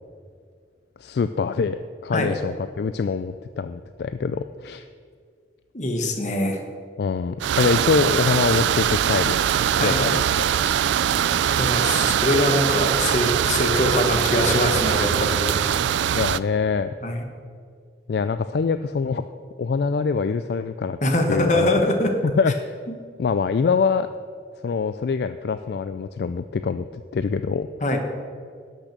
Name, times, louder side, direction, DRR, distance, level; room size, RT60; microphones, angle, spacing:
voice 1, 1.0-4.9 7.0-9.4 9.8-10.5 16.1-16.9 18.1-19.2 19.6-21.0 21.3-21.7 22.2-22.7 23.2-24.1 24.6-27.7, left 5 dB, 60° left, 11 dB, 0.3 m, -24 dB
voice 2, 5.7-6.6 9.8-10.0 11.6-15.6 17.0-17.2 21.0-22.1 27.8-28.0, left 1 dB, 40° left, 4 dB, 1.3 m, -23 dB
sound 1, 7.4-16.4, right 9 dB, 80° right, 0.3 m, -22 dB
12.0 x 6.2 x 6.6 m, 2.1 s
head